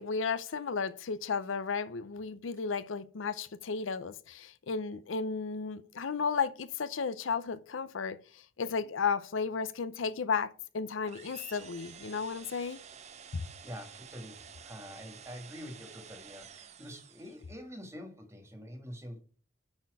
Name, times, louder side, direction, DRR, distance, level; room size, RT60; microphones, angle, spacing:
voice 1, 0.0-12.8, left 5 dB, 85° left, 0.6 m, -34 dB
sound 1, 11.0-17.6, right 7 dB, 35° right, 0.6 m, -51 dB
voice 2, 13.6-19.2, equal, 15° right, 1.6 m, -46 dB
9.6 x 4.3 x 4.7 m
head